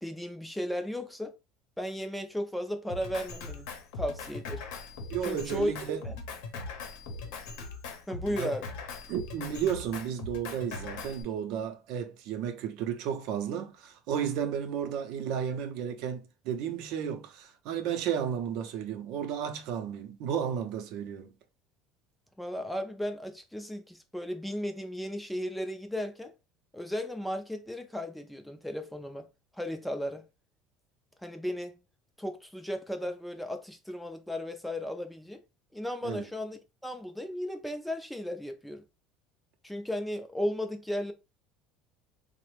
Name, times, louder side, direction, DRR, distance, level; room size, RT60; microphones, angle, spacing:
voice 1, 0.0-1.4 1.8-3.7 3.9-4.6 5.2-5.7 6.0-6.2 8.1-8.7 22.4-26.3 26.7-29.3 29.5-30.2 31.2-31.7 32.2-35.4 35.7-38.8 39.6-41.1, equal, ahead, 0.3 m, -35 dB
Drum kit, 2.9-11.2, left 3 dB, 75° left, 0.7 m, -40 dB
voice 2, 5.1-6.0 8.3-8.5 9.1-21.3 36.0-36.3, right 8 dB, 65° right, 0.5 m, -33 dB
3.2 x 2.0 x 3.1 m
cardioid pair, 150°, 0 cm